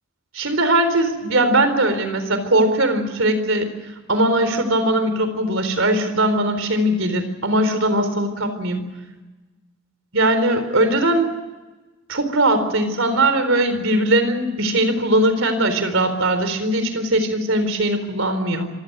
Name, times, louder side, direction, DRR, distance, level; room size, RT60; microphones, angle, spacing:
voice 1, 0.3-3.7 4.1-8.8 10.1-11.3 12.1-18.7, right 1 dB, 75° right, 9 dB, 4.1 m, -20 dB
26.0 x 16.5 x 9.6 m, 1.2 s
head